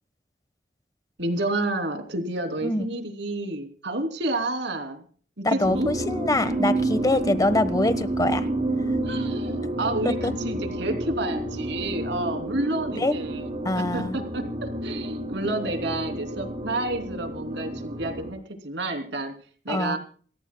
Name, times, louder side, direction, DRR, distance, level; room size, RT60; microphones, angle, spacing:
voice 1, 1.2-5.0 5.4-5.9 7.1-7.2 9.0-10.2 10.4-13.5 13.9-18.4 18.6-19.3 19.6-20.0, right 2 dB, 75° right, 5 dB, 3.0 m, -30 dB
voice 2, 5.4-8.5 8.8-9.0 9.6-9.7 10.0-10.3 13.0-13.1 13.6-14.2 19.7-20.0, left 1 dB, 20° left, 12 dB, 1.2 m, -24 dB
sound 1, 5.6-18.3, right 1 dB, 35° right, 4.0 m, -29 dB
28.0 x 14.5 x 2.3 m, 0.43 s
head